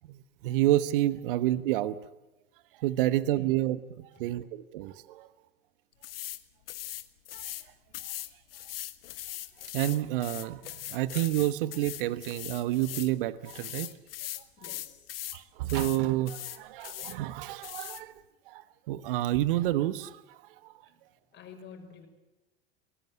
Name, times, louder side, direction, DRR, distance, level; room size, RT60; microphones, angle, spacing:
voice 1, 0.0-2.0 2.8-5.3 7.3-7.5 9.7-13.9 15.3-18.1 18.5-20.7, right 14 dB, 60° right, 16 dB, 1.2 m, -29 dB
voice 2, 3.1-3.5 4.1-4.4 14.6-15.1 20.9-21.0 21.3-22.1, left 6 dB, 35° left, 5 dB, 6.1 m, -50 dB
sound 1, 6.0-6.4 6.7-7.6 7.9-13.1 13.4-15.4 15.7-16.0 16.3-17.2 17.6-18.0, left 13 dB, 70° left, 1.5 m, -40 dB
24.0 x 19.0 x 7.9 m, 1.0 s
hypercardioid pair, 85°, 30 cm